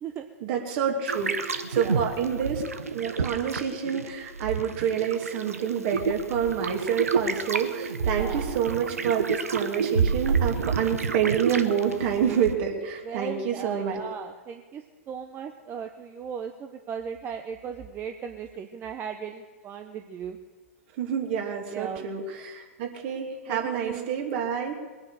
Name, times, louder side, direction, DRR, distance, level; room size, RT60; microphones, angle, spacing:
voice 1, 0.4-2.6 2.9-14.0 21.0-24.8, right 8 dB, 50° right, 1 dB, 2.8 m, -28 dB
sound 1, 1.1-12.5, right 5 dB, 85° right, 1.1 m, -29 dB
voice 2, 1.8-2.1 8.1-8.6 13.0-20.4 21.7-22.0 23.5-24.2, right 7 dB, 25° right, 6 dB, 0.9 m, -37 dB
21.5 x 9.6 x 6.6 m, 1.3 s
figure-of-eight pair, 105°, 8 cm